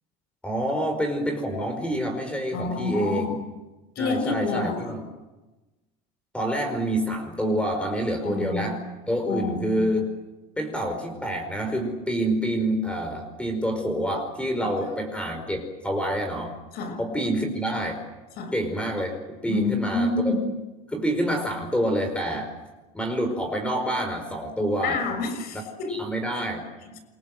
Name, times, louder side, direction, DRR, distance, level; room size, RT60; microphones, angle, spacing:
voice 1, 0.4-3.4 4.0-5.0 6.3-8.8 9.1-10.1 10.6-16.5 17.0-18.0 18.5-20.4 20.9-22.5 22.9-25.0 25.9-26.6, right 1 dB, 5° left, 5 dB, 5.0 m, -27 dB
voice 2, 2.5-3.4 3.9-4.9 8.2-8.8 9.3-9.8 14.6-14.7 16.7-17.0 18.4-18.5 19.5-20.6 24.8-26.0 26.8-27.0, left 3 dB, 60° left, 8 dB, 6.4 m, -28 dB
28.0 x 23.0 x 7.8 m, 1.1 s
cardioid pair, 125°, 18 cm